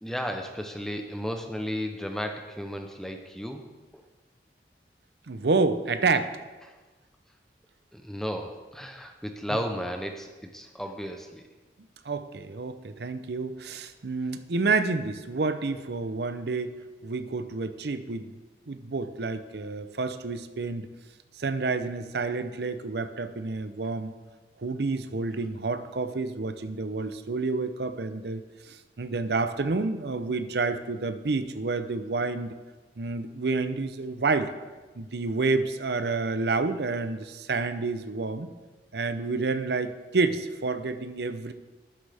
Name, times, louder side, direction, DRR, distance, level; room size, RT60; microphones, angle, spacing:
voice 1, 0.0-3.7 7.9-11.4, equal, ahead, 4 dB, 0.7 m, -34 dB
voice 2, 5.3-6.4 12.0-18.3 18.7-20.9 21.4-24.1 24.6-28.4 28.7-32.5 33.0-34.5 35.0-38.5 38.9-41.5, right 3 dB, 70° right, 10 dB, 0.6 m, -29 dB
11.5 x 9.7 x 3.4 m, 1.2 s
head